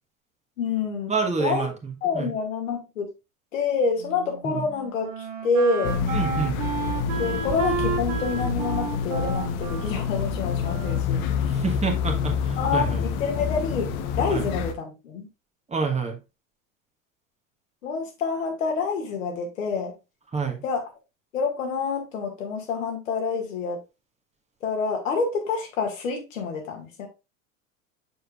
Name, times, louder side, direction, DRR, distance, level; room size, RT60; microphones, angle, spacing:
voice 1, 0.6-1.1 1.4-1.7 2.0-3.1 3.5-5.1 5.4-6.0 7.2-11.2 12.6-15.3 17.8-19.9 20.6-20.8 21.3-23.8 24.6-27.1, left 4 dB, 70° left, 2.1 m, -27 dB
voice 2, 1.1-1.7 2.1-2.3 4.4-4.6 6.1-6.6 11.5-13.0 14.3-14.4 15.7-16.2 20.3-20.6, right 5 dB, 15° right, 1.4 m, -27 dB
Wind instrument woodwind instrument, 4.0-11.8, right 5 dB, 65° right, 1.8 m, -33 dB
sound 1, 5.8-14.7, left 6 dB, 50° left, 1.0 m, -27 dB
6.7 x 6.5 x 2.4 m
figure-of-eight pair, 80°, 41 cm